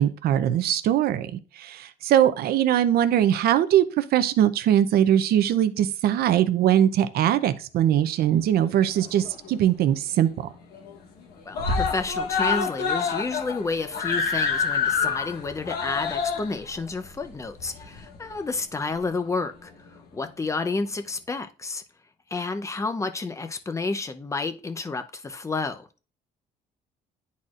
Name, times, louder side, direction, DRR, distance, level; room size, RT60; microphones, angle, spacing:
voice 1, 0.0-10.3, right 11 dB, 65° right, 0.6 m, -21 dB
Screaming, 8.6-9.6 9.9-10.0 10.3-10.4 10.7-11.2 11.5-18.3 19.2-19.3, left 5 dB, 70° left, 1.2 m, -27 dB
voice 2, 11.5-21.8 22.3-25.9, left 3 dB, 15° left, 0.7 m, -30 dB
10.5 x 4.2 x 2.5 m
cardioid pair, 110°, 17 cm